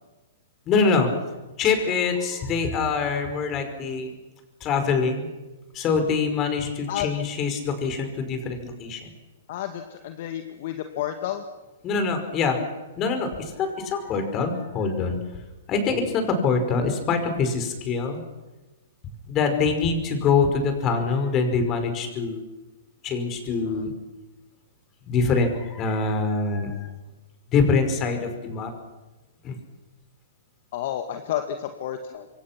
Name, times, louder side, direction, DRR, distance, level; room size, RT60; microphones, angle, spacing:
voice 1, 0.7-1.1 1.6-4.1 4.6-5.3 5.7-9.1 11.8-12.6 13.0-15.2 15.7-18.2 19.1-22.4 23.0-23.9 25.1-26.9 27.5-28.7 29.4-29.5, left 4 dB, 30° left, 7 dB, 5.2 m, -24 dB
voice 2, 9.5-11.4 23.6-23.8 30.7-32.3, left 11 dB, 50° left, 6 dB, 1.8 m, -31 dB
27.0 x 23.5 x 6.0 m, 1.1 s
figure-of-eight pair, 115°, 0 cm